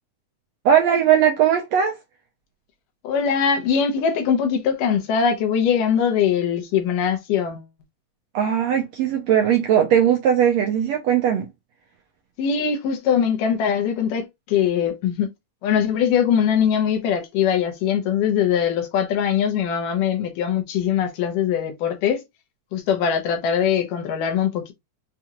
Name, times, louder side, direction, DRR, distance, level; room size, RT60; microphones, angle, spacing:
voice 1, 0.6-2.0 8.3-11.5, right 9 dB, 75° right, 1.6 m, -19 dB
voice 2, 3.0-7.7 12.4-15.3 15.6-22.2 22.7-24.7, left 8 dB, 80° left, 2.5 m, -21 dB
6.1 x 2.4 x 2.9 m
omnidirectional pair, 3.7 m